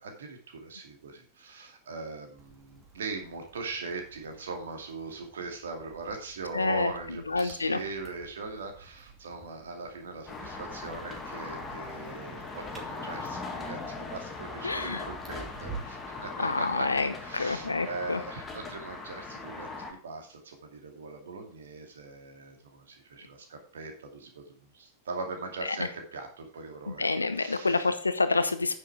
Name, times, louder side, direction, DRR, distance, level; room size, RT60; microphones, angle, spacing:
voice 1, 0.0-16.9 17.2-27.1 27.4-27.9, right 3 dB, 65° right, 4 dB, 2.4 m, -40 dB
sound 1, 2.4-16.1, right 4 dB, 20° right, 2.5 m, -50 dB
voice 2, 6.5-6.9 7.3-7.8 14.6-15.0 16.4-18.2 25.8-25.9 26.9-28.7, left 3 dB, 80° left, 11 dB, 1.0 m, -28 dB
sound 2, 10.3-19.9, left 3 dB, 20° left, 2.2 m, -40 dB
9.6 x 6.6 x 4.8 m, 0.42 s
figure-of-eight pair, 90°, 0 cm